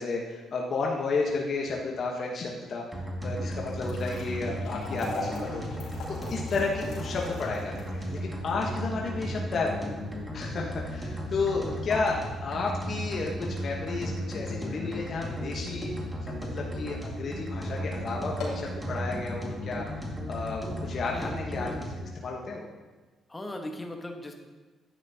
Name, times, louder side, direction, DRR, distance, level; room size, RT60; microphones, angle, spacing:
voice 1, 0.0-2.8 3.2-5.6 6.1-9.9 10.3-15.9 16.2-19.8 20.3-22.7, left 3 dB, 55° left, -1 dB, 1.1 m, -32 dB
sound 1, 2.9-22.1, equal, 10° right, 2.0 m, -35 dB
sound 2, 3.6-15.9 16.3-16.4 17.2-17.3 17.7-17.8 18.2-18.8, left 2 dB, 75° left, 2.9 m, -43 dB
voice 2, 11.9-12.3 21.1-21.8 23.3-24.3, left 1 dB, 20° left, 3 dB, 1.2 m, -38 dB
10.5 x 9.1 x 2.8 m, 1.2 s
cardioid pair, 90°, 0 cm